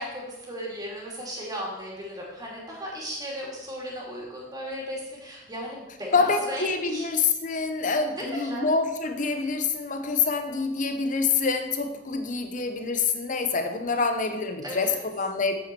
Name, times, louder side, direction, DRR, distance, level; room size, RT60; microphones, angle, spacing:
voice 1, 0.0-7.1 8.2-8.7 14.6-15.0, equal, 20° right, -3 dB, 2.7 m, -36 dB
voice 2, 6.1-15.5, left 4 dB, 45° left, 7 dB, 0.9 m, -26 dB
8.4 x 8.1 x 4.5 m, 0.99 s
head